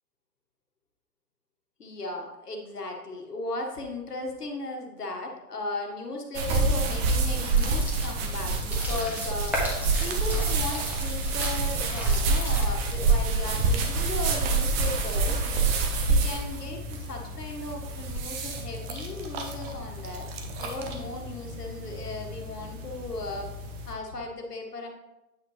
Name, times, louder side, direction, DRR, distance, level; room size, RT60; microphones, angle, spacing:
voice 1, 1.8-20.3 20.6-23.5 23.9-24.9, left 2 dB, 85° left, 1 dB, 1.6 m, -36 dB
sound 1, 6.3-23.9, right 3 dB, 40° right, 1.2 m, -28 dB
sound 2, 7.4-13.0, equal, 5° right, 1.7 m, -35 dB
9.0 x 5.5 x 3.2 m, 0.98 s
figure-of-eight pair, 110°, 46 cm